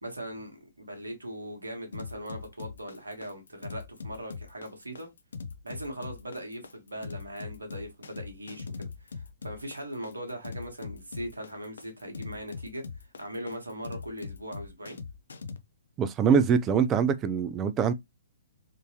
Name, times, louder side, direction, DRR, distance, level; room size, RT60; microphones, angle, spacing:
voice 1, 0.0-5.1 5.6-12.8 13.2-15.0, equal, 80° right, 1.3 m, -40 dB
sound 1, 1.9-15.6, left 5 dB, 65° left, 0.5 m, -41 dB
voice 2, 16.0-17.9, right 6 dB, 20° right, 0.4 m, -24 dB
3.6 x 2.6 x 2.8 m
figure-of-eight pair, 125°, 0 cm